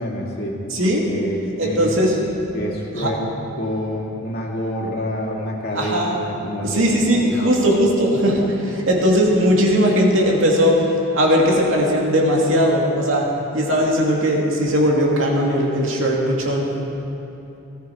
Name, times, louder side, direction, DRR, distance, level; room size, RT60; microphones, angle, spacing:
voice 1, 0.0-0.6 1.1-1.9 2.5-3.3 3.6-7.5, equal, 50° left, -2 dB, 2.5 m, -27 dB
voice 2, 0.7-1.1 1.6-2.1 3.0-3.1 5.7-6.2 6.6-13.3 13.5-16.7, equal, 65° right, -2 dB, 2.6 m, -18 dB
19.5 x 14.0 x 4.8 m, 2.9 s
head